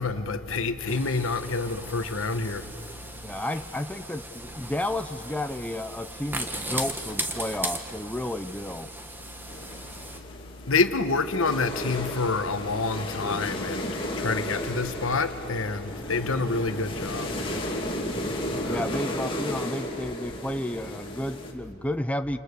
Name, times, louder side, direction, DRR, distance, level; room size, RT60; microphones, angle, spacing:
voice 1, 0.0-3.1 10.6-17.4 18.6-18.8, left 3 dB, 70° left, 1.4 m, -28 dB
sound 1, 0.9-10.2, right 1 dB, 10° right, 1.6 m, -37 dB
voice 2, 3.2-8.9 18.6-22.4, left 1 dB, 5° left, 0.6 m, -32 dB
sound 2, 9.5-21.5, left 1 dB, 25° left, 2.9 m, -34 dB
28.5 x 28.5 x 6.7 m
head